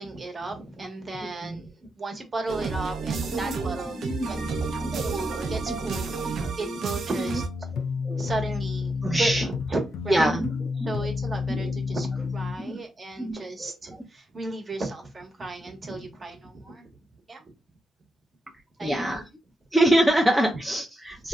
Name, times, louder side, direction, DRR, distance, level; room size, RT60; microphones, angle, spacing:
voice 1, 0.0-4.0 4.3-4.4 4.9-10.4 10.8-16.9 17.3-17.4 18.8-19.0, right 2 dB, 35° right, 1.0 m, -35 dB
sound 1, 2.5-7.5, right 4 dB, 65° right, 0.6 m, -31 dB
voice 2, 4.0-5.1 5.7-5.8 6.0-6.2 6.7-6.8 7.3-7.4 8.1-8.3 9.0-9.5 10.1-10.5 10.8-11.0 11.5-11.7 12.6-12.8 13.2-13.7 18.8-19.2 19.7-21.3, right 1 dB, 5° right, 0.5 m, -25 dB
sound 2, 7.3-12.6, left 5 dB, 75° left, 0.4 m, -30 dB
2.6 x 2.2 x 3.5 m
cardioid pair, 90°, 0 cm